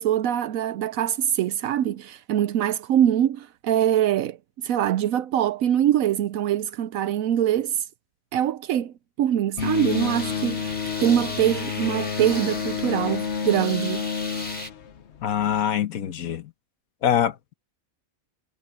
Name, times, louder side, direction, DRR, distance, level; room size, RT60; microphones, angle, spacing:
voice 1, 0.0-4.4 4.6-7.8 8.3-14.1, right 11 dB, 75° right, 1.0 m, -23 dB
sound 1, 9.6-15.6, left 6 dB, 55° left, 1.2 m, -29 dB
sound 2, 9.6-14.7, left 1 dB, 30° left, 6.8 m, -37 dB
voice 2, 15.2-16.5 17.0-17.4, left 9 dB, 80° left, 1.4 m, -24 dB
omnidirectional pair, 1.5 m